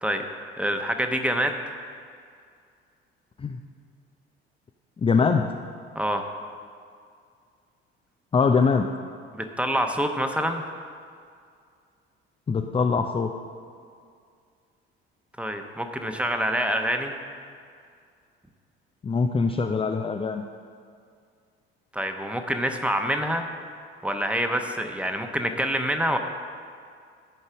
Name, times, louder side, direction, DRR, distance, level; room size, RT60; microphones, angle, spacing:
voice 1, 0.6-1.6 5.9-6.2 9.3-10.6 15.4-17.1 21.9-23.4 24.0-26.2, equal, 5° right, 5 dB, 1.0 m, -26 dB
voice 2, 5.0-5.5 8.3-8.9 12.5-13.3 19.0-20.4, left 5 dB, 20° left, 4 dB, 0.5 m, -22 dB
13.5 x 5.5 x 6.0 m, 2.2 s
figure-of-eight pair, 55°, 31 cm